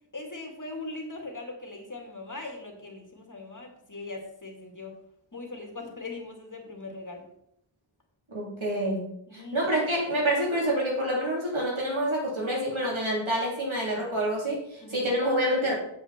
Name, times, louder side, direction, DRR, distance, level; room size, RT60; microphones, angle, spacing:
voice 1, 0.1-5.0 5.3-7.2 9.3-9.6 14.8-15.1, left 2 dB, 40° left, 2 dB, 2.2 m, -40 dB
voice 2, 8.3-15.7, right 1 dB, 80° right, -3 dB, 3.4 m, -27 dB
8.5 x 7.5 x 4.3 m, 0.75 s
wide cardioid pair, 45°, 47 cm